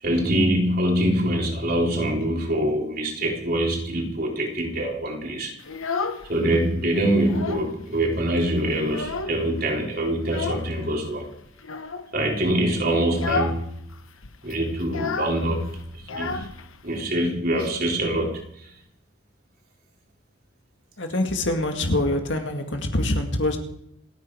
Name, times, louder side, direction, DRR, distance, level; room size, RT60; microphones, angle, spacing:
voice 1, 0.0-5.6 6.3-11.3 12.1-13.8 14.4-16.5 16.8-18.7, right 1 dB, 45° right, 0 dB, 3.7 m, -24 dB
Child speech kid speaking, 5.6-6.6 7.0-7.8 8.1-8.2 8.5-9.6 10.2-10.7 11.6-12.1 12.5-12.7 13.1-13.6 13.9-14.0 14.2-17.0, left 4 dB, 80° left, 1.1 m, -31 dB
voice 2, 21.0-23.6, left 1 dB, 60° left, 4 dB, 2.1 m, -24 dB
28.0 x 9.6 x 4.8 m, 0.76 s
head